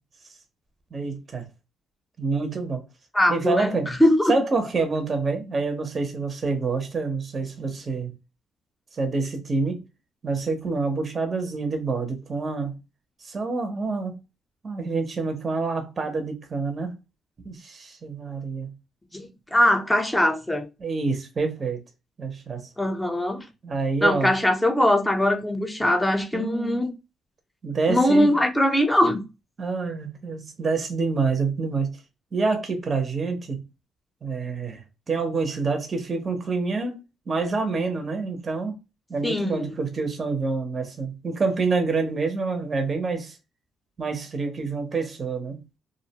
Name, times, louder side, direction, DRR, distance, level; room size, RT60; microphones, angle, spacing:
voice 1, 0.9-1.5 2.2-2.8 3.3-3.9 4.3-8.1 8.9-9.8 10.2-12.8 13.2-14.2 14.6-16.9 17.4-18.7 20.8-21.8 22.2-22.7 23.6-24.3 26.3-26.8 27.6-28.3 29.6-31.9 32.3-33.6 34.2-34.8 35.1-37.0 37.3-38.7 39.1-43.4 44.0-45.6, right 4 dB, 40° right, 0.6 m, -27 dB
voice 2, 3.1-3.7 4.0-4.4 19.1-20.7 22.8-23.4 24.0-26.9 27.9-29.2 39.2-39.7, left 1 dB, 10° left, 0.6 m, -21 dB
2.4 x 2.1 x 2.7 m
cardioid pair, 90°, 0 cm